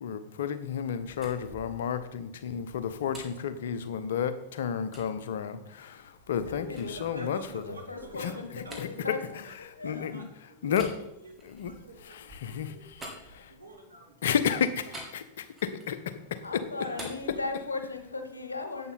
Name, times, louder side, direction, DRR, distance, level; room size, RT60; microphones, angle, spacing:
voice 1, 0.0-7.6 8.2-8.3 8.8-8.9 9.8-10.3 10.6-10.9 11.5-11.7 12.4-12.7 14.2-16.6, left 8 dB, 60° left, 12 dB, 0.9 m, -31 dB
sound 1, 0.9-4.3 4.9-5.1 5.7-10.1 10.7-13.9 14.9-16.0 16.4-18.1, right 1 dB, 15° right, 2.6 m, -49 dB
voice 2, 5.9-7.3 7.6-10.1 16.4-18.9, left 3 dB, 80° left, 7 dB, 1.2 m, -38 dB
voice 3, 6.9-9.1 9.4-11.3 11.6-15.0 16.8-17.4, right 3 dB, 80° right, 1 dB, 2.3 m, -49 dB
11.0 x 8.5 x 4.0 m, 0.83 s
figure-of-eight pair, 90°, 0 cm